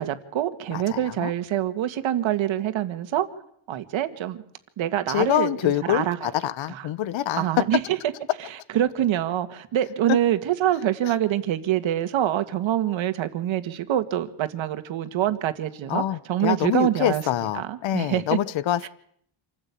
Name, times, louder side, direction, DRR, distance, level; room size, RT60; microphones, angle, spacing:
voice 1, 0.0-3.3 3.7-4.4 4.8-6.2 6.7-6.9 7.4-8.0 8.7-17.2 17.5-18.2 18.8-18.9, right 11 dB, 70° right, 2.0 m, -25 dB
voice 2, 0.7-1.3 5.1-7.6 10.1-10.2 15.9-18.9, left 12 dB, 65° left, 1.2 m, -25 dB
27.0 x 15.0 x 8.6 m
cardioid pair, 145°, 48 cm